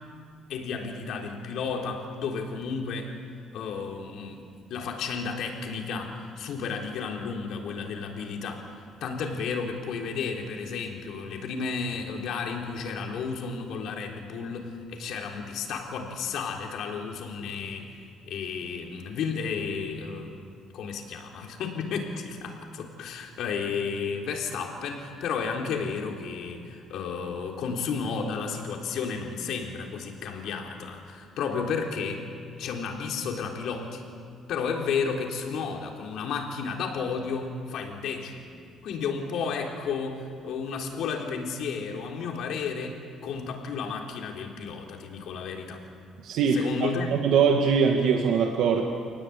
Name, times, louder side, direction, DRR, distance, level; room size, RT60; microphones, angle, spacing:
voice 1, 0.5-3.2 3.5-4.4 4.7-17.9 18.2-20.4 20.7-32.3 32.6-34.0 34.5-38.5 38.8-45.8 46.5-47.1, left 5 dB, 65° left, 1 dB, 3.8 m, -32 dB
voice 2, 46.2-48.8, right 6 dB, 70° right, 2 dB, 2.0 m, -22 dB
28.0 x 19.5 x 8.6 m, 2.2 s
cardioid pair, 160°, 0 cm